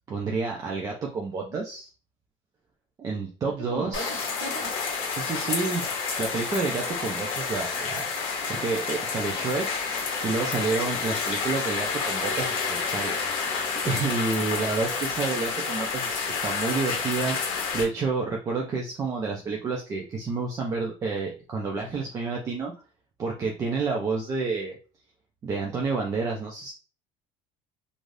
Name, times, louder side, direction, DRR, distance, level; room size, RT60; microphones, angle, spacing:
voice 1, 0.1-1.9 3.0-4.2 5.1-5.9 6.2-9.7 10.2-13.1 13.8-22.7 23.2-24.8 25.4-26.7, right 4 dB, 25° right, -1 dB, 0.4 m, -29 dB
voice 2, 3.4-5.0 14.4-14.6, right 1 dB, 40° right, -2 dB, 1.4 m, -39 dB
sound 1, 3.9-17.8, left 5 dB, 40° left, 0.8 m, -29 dB
2.6 x 2.3 x 3.2 m, 0.34 s
cardioid pair, 175°, 14 cm